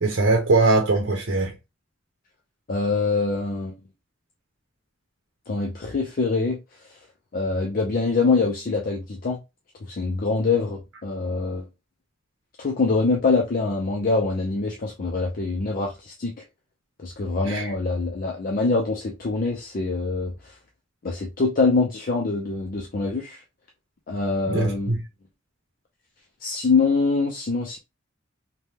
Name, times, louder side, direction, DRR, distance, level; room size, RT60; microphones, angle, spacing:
voice 1, 0.0-1.5 17.4-17.7 24.5-25.0, right 3 dB, 75° right, 0.7 m, -21 dB
voice 2, 2.7-3.7 5.5-6.6 7.3-9.4 9.9-11.7 12.6-16.3 17.0-20.5 21.0-23.4 24.1-24.9 26.4-27.8, left 3 dB, 45° left, 0.5 m, -24 dB
3.3 x 2.2 x 2.8 m
head